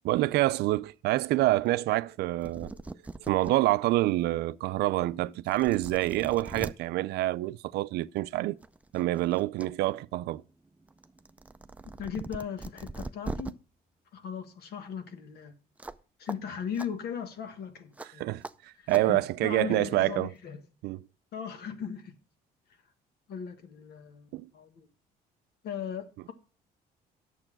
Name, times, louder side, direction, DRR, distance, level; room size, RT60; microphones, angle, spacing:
voice 1, 0.0-2.8 3.2-8.6 8.9-10.4 18.2-20.3 20.8-21.0 24.3-24.5, right 17 dB, 75° right, 0.5 m, -27 dB
sound 1, 2.2-2.3 2.4-3.5 4.1-4.2 5.0-5.1 5.5-6.7 8.0-8.2 8.6-9.7 10.0-13.5 15.8-16.0 16.3-16.4 16.7-16.9 18.0-18.1 18.4-18.5 18.9-19.0, right 2 dB, 10° right, 0.4 m, -40 dB
voice 2, 12.0-13.6 14.1-15.5 16.2-18.3 18.8-20.6 21.3-22.1 23.3-24.9 25.6-26.3, left 7 dB, 70° left, 1.5 m, -38 dB
9.0 x 7.1 x 6.0 m
cardioid pair, 110°, 17 cm